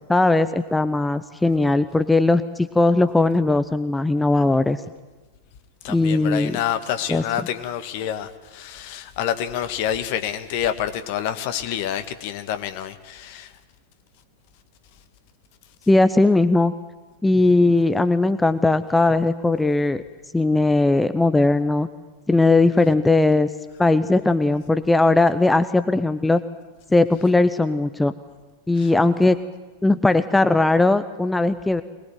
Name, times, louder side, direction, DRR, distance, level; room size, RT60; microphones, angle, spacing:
voice 1, 0.1-4.8 5.9-6.6 7.1-7.2 15.9-16.7 17.2-20.0 20.3-21.9 22.3-23.5 23.8-26.4 26.9-28.1 28.7-29.4 29.8-31.8, left 2 dB, 5° left, 0.8 m, -18 dB
voice 2, 5.8-13.5 28.8-28.9, left 10 dB, 50° left, 1.8 m, -28 dB
24.5 x 20.5 x 9.3 m
figure-of-eight pair, 90°, 0 cm